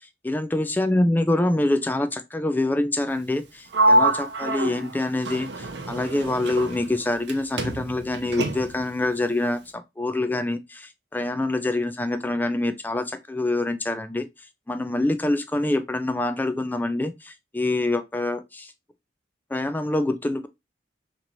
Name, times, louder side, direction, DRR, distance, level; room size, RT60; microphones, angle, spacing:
voice 1, 0.2-14.3 14.7-18.7 19.5-20.5, left 2 dB, 10° left, 0.3 m, -25 dB
Sliding door, 3.7-7.3 7.6-8.9, right 1 dB, 70° right, 0.7 m, -25 dB
3.9 x 3.0 x 3.0 m
head